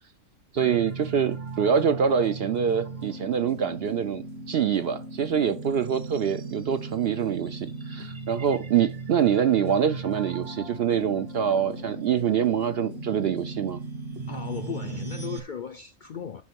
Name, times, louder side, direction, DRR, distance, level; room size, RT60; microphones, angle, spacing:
voice 1, 0.5-13.8, right 8 dB, 60° right, 0.7 m, -25 dB
sound 1, 0.6-15.4, right 3 dB, 45° right, 1.4 m, -37 dB
voice 2, 14.3-16.4, left 8 dB, 60° left, 0.5 m, -36 dB
8.3 x 5.4 x 5.9 m
omnidirectional pair, 1.4 m